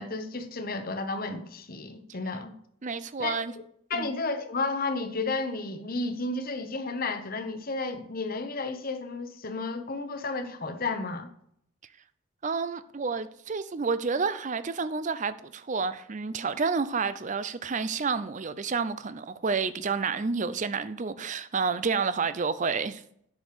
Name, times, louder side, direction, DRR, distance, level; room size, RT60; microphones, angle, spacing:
voice 1, 0.0-2.5 3.2-3.4 3.9-11.3, left 3 dB, 40° left, 1.0 m, -32 dB
voice 2, 2.8-3.5 3.9-4.1 12.4-23.0, right 5 dB, 35° right, 0.5 m, -30 dB
9.5 x 6.3 x 5.1 m
head